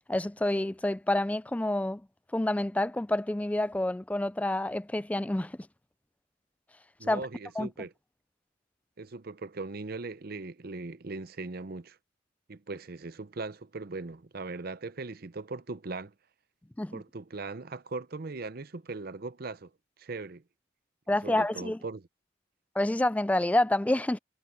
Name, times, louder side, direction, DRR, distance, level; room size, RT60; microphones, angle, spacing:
voice 1, 0.1-2.0 2.3-5.6 7.1-7.2 7.6-7.7 16.8-17.0 21.1-21.8 22.8-24.2, left 1 dB, 5° left, 0.3 m, -28 dB
voice 2, 7.0-7.9 9.0-12.0 12.5-16.1 16.9-19.7 20.0-20.4 21.1-22.0, right 3 dB, 50° right, 0.7 m, -39 dB
head